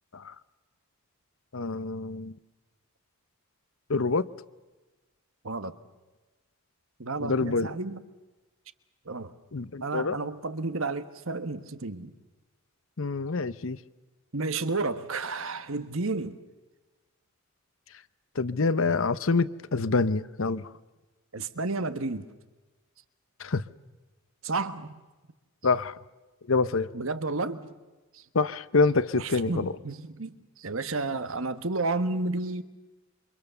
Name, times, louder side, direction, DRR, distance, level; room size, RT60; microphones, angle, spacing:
voice 1, 1.5-2.4 3.9-4.3 7.2-7.7 9.5-10.2 13.0-13.8 18.4-20.7 23.4-23.6 25.6-25.9 26.5-26.9 28.3-29.7, left 3 dB, 65° left, 0.8 m, -26 dB
voice 2, 7.0-8.0 9.0-9.3 9.8-12.1 14.3-16.4 21.3-22.2 24.4-24.9 26.9-27.6 28.1-28.2 29.1-32.6, right 3 dB, 65° right, 1.4 m, -31 dB
28.5 x 25.0 x 6.9 m
head